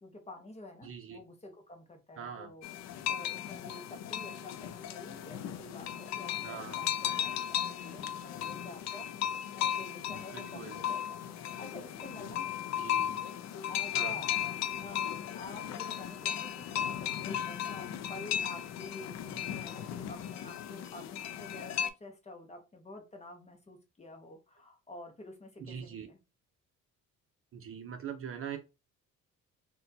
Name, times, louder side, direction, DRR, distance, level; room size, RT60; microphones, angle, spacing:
voice 1, 0.0-9.3 9.5-12.5 13.7-26.2, left 2 dB, 20° left, 4 dB, 0.7 m, -49 dB
voice 2, 0.8-1.2 2.2-2.5 6.4-6.8 10.3-10.8 12.8-13.1 13.9-14.2 25.6-26.1 27.5-28.6, right 8 dB, 45° right, 5 dB, 0.6 m, -42 dB
sound 1, 2.6-21.9, left 10 dB, 55° left, 0.4 m, -36 dB
4.1 x 2.3 x 2.7 m, 0.27 s
cardioid pair, 135°, 32 cm